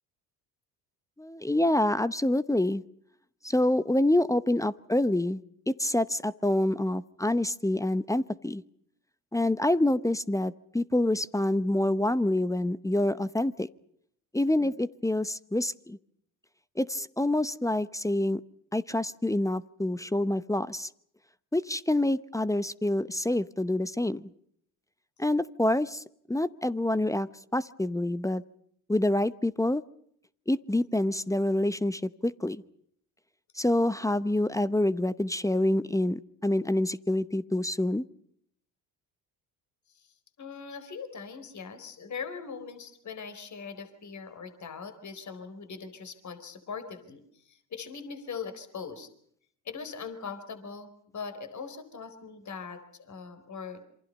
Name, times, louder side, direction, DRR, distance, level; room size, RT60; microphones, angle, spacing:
voice 1, 1.2-2.8 3.4-8.6 9.3-13.7 14.3-16.0 16.8-18.4 18.7-20.9 21.5-24.2 25.2-28.4 28.9-29.8 30.5-32.6 33.6-38.0, left 1 dB, 5° left, 15 dB, 0.9 m, -27 dB
voice 2, 40.4-47.2 47.5-49.1 49.6-53.8, left 5 dB, 40° left, 9 dB, 4.4 m, -41 dB
27.5 x 24.5 x 5.5 m, 0.68 s
hypercardioid pair, 70°, 42 cm